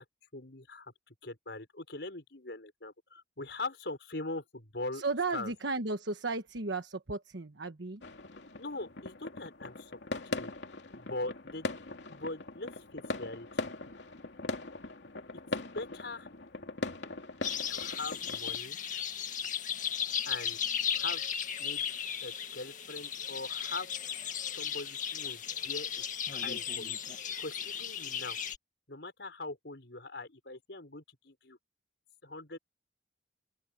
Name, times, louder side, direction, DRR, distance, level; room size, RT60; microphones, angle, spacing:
voice 1, 0.3-5.0 5.3-5.5 8.6-10.5 10.9-11.7 12.1-13.7 15.7-16.3 17.7-18.8 20.3-20.6 20.9-21.3 21.6-23.9 24.5-25.9 26.2-27.0 27.4-28.4 28.9-31.6 32.2-32.6, left 2 dB, 75° left, 5.4 m, -42 dB
voice 2, 4.9-8.0, right 3 dB, 85° right, 1.3 m, -34 dB
sound 1, 8.0-18.6, left 2 dB, 90° left, 2.6 m, -40 dB
sound 2, 17.4-28.6, left 8 dB, 50° left, 1.9 m, -36 dB
open air
head